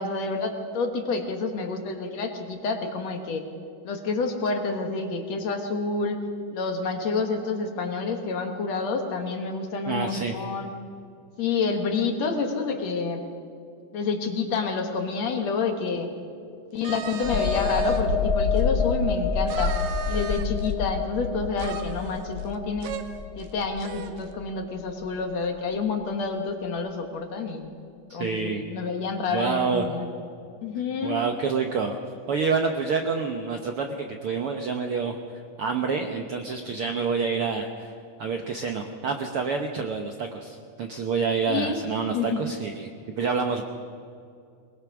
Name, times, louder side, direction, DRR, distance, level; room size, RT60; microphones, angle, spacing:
voice 1, 0.0-3.5 3.8-6.2 6.5-10.7 11.4-13.2 13.9-16.1 16.7-19.7 20.1-22.9 23.4-27.7 28.1-30.1 30.6-31.2 41.5-41.9 42.1-42.4, left 4 dB, 60° left, 5 dB, 2.4 m, -28 dB
voice 2, 9.9-10.3 28.2-28.6 29.3-29.8 31.0-32.0 32.3-35.2 35.6-37.9 38.2-42.9 43.2-43.6, right 5 dB, 65° right, 4 dB, 1.4 m, -27 dB
sound 1, 16.8-18.0 18.6-18.7 19.5-20.7 21.6-22.6 22.8-23.0 23.4-23.5 23.8-24.2, right 8 dB, 85° right, 2.7 m, -37 dB
sound 2, 17.2-24.7 25.0-25.2, left 5 dB, 75° left, 0.9 m, -27 dB
21.5 x 20.5 x 6.1 m, 2.5 s
omnidirectional pair, 3.8 m